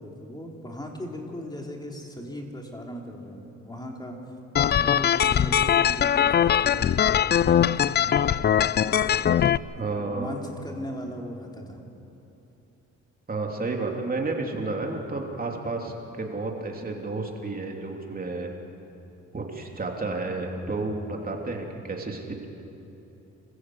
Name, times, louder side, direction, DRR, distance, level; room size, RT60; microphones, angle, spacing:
voice 1, 0.0-4.2 4.8-9.5 9.8-11.9, equal, 15° left, 0 dB, 3.5 m, -39 dB
sound 1, 4.6-9.6, left 9 dB, 35° left, 0.4 m, -21 dB
voice 2, 9.7-10.3 13.3-18.5 19.3-22.5, right 3 dB, 30° right, 1 dB, 3.2 m, -31 dB
26.5 x 15.0 x 8.0 m, 3.0 s
cardioid pair, 90°, 30 cm